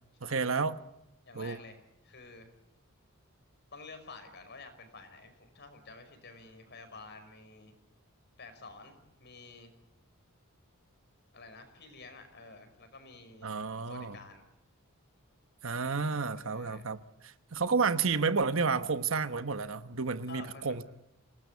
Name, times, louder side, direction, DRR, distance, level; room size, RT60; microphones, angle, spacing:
voice 1, 0.2-0.8 1.3-1.6 13.4-14.2 15.6-17.0 17.2-20.8, right 4 dB, 65° right, 11 dB, 1.1 m, -31 dB
voice 2, 1.3-2.5 3.7-7.8 8.4-9.7 11.3-14.4 16.4-16.9 20.3-20.7, left 3 dB, 50° left, 8 dB, 5.5 m, -50 dB
27.5 x 19.0 x 8.3 m, 0.87 s
head